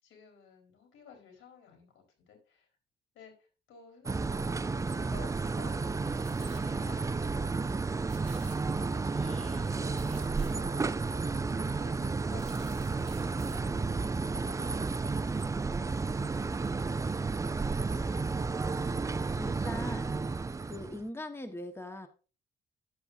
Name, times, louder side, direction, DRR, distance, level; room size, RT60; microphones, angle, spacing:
voice 1, 0.0-2.7 3.1-8.6 8.9-11.5, left 6 dB, 85° left, 3 dB, 4.0 m, -56 dB
sound 1, 4.0-21.0, right 4 dB, 15° right, 0.4 m, -32 dB
Breathing, 5.7-10.0, left 2 dB, 40° left, 4.6 m, -60 dB
sound 2, 5.7-6.7 7.2-7.3 7.5-7.7 8.0-9.1 9.4-10.9 11.5-11.6 12.0-13.6 14.0-14.1, right 5 dB, 30° right, 4.5 m, -55 dB
voice 2, 8.7-9.0 18.7-20.2 20.6-22.1, left 1 dB, 10° left, 7 dB, 1.3 m, -42 dB
11.0 x 8.2 x 2.6 m, 0.34 s
cardioid pair, 90°, 20 cm